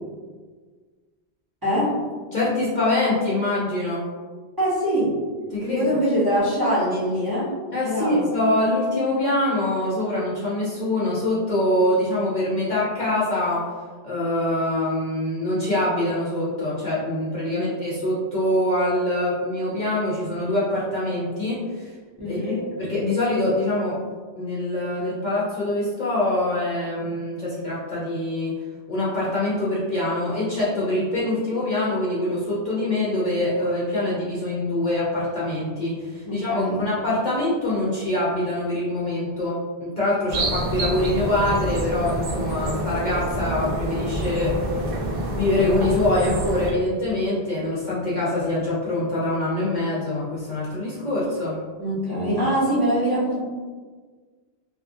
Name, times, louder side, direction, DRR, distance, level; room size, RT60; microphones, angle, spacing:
voice 1, 1.6-2.0 4.6-5.2 5.7-7.5 7.8-8.2 17.5-17.7 22.2-22.7 36.2-36.8 51.8-53.4, equal, 20° right, -11 dB, 0.9 m, -23 dB
voice 2, 2.3-4.1 5.5-6.0 7.7-13.7 14.0-21.9 22.2-24.0 24.3-28.6 28.9-51.6, left 1 dB, 50° left, -8 dB, 0.7 m, -24 dB
sound 1, 40.3-46.7, right 1 dB, 60° right, 0.7 m, -27 dB
2.6 x 2.4 x 2.6 m, 1.5 s
omnidirectional pair, 1.1 m